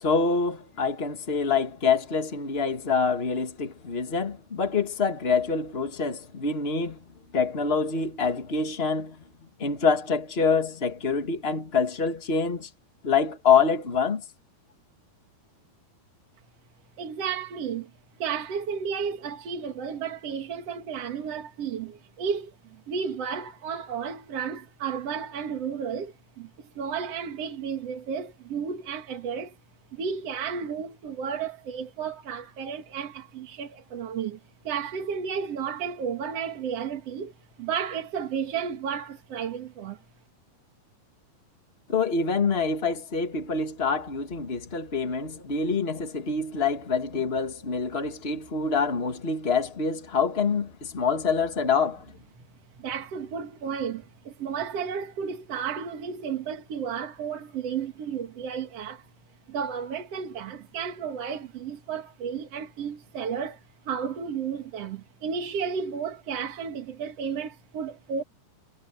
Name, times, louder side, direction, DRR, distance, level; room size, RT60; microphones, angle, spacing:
voice 1, 0.0-7.0 7.3-9.2 9.6-12.7 13.0-14.2 41.9-52.0, left 5 dB, 90° left, 0.5 m, -26 dB
voice 2, 17.0-17.9 18.2-29.6 29.9-34.4 34.6-37.3 37.6-40.0 52.8-59.1 59.5-63.6 63.9-68.2, right 7 dB, 50° right, 2.3 m, -33 dB
omnidirectional pair, 4.6 m